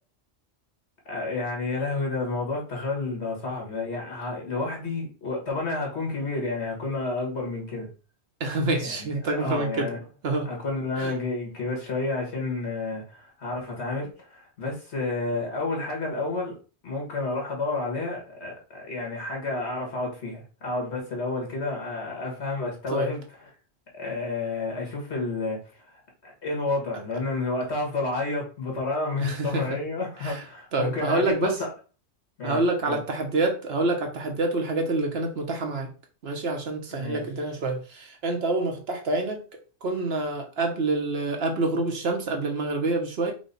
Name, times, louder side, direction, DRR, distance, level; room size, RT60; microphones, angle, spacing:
voice 1, 1.1-7.9 8.8-10.0 10.5-16.6 16.8-23.2 23.9-31.7 32.4-33.0 36.9-37.2, left 3 dB, 70° left, 0 dB, 1.8 m, -30 dB
voice 2, 8.4-9.9 10.2-10.5 11.0-11.1 22.9-23.1 29.2-29.6 30.2-30.4 30.7-31.6 32.4-35.9 36.2-39.4 39.8-43.3, right 2 dB, 65° right, 3 dB, 1.1 m, -27 dB
4.9 x 2.2 x 4.0 m, 0.36 s
omnidirectional pair, 1.2 m